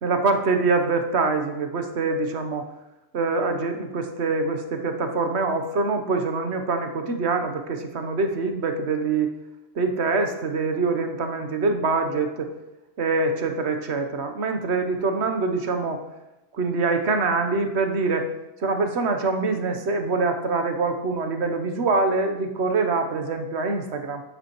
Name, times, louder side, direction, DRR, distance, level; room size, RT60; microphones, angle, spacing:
voice 1, 0.0-2.7 3.1-9.4 9.7-12.5 13.0-16.0 16.5-18.3 18.6-24.2, right 3 dB, 70° right, 6 dB, 1.2 m, -24 dB
11.0 x 8.0 x 3.1 m, 0.97 s
omnidirectional pair, 1.2 m